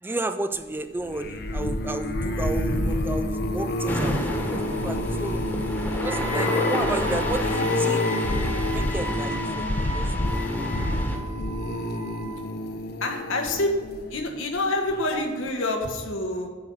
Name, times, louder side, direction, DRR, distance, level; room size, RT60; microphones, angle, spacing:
voice 1, 0.0-5.4 5.9-8.1 8.7-10.4 15.1-15.3, right 2 dB, 10° right, 9 dB, 0.3 m, -33 dB
sound 1, 1.0-14.4 14.9-15.2 15.5-15.6, left 1 dB, 50° left, 0.8 m, -28 dB
sound 2, 3.9-11.2, equal, 10° left, 1.3 m, -32 dB
Wind instrument woodwind instrument, 6.0-12.5, equal, 55° right, 3.0 m, -36 dB
voice 2, 13.0-13.7 14.1-16.5, left 2 dB, 85° left, 2 dB, 1.5 m, -27 dB
9.4 x 5.5 x 6.3 m, 1.5 s
head